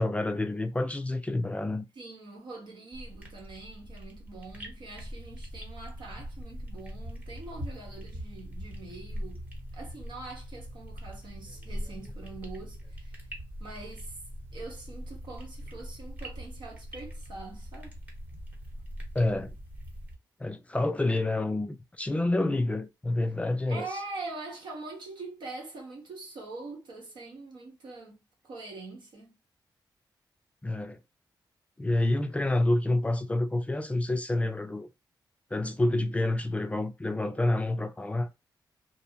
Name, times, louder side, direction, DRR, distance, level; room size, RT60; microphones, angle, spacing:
voice 1, 0.0-1.9 19.1-19.5 20.4-23.9 30.6-31.0 31.8-34.9 35.5-38.3, left 2 dB, 15° left, 0.3 m, -28 dB
voice 2, 1.9-9.5 9.7-13.3 13.6-14.2 14.5-17.9 23.7-29.3, right 3 dB, 80° right, 1.0 m, -43 dB
sound 1, 2.9-20.2, equal, 20° right, 0.9 m, -42 dB
2.6 x 2.0 x 2.7 m
cardioid pair, 110°, 8 cm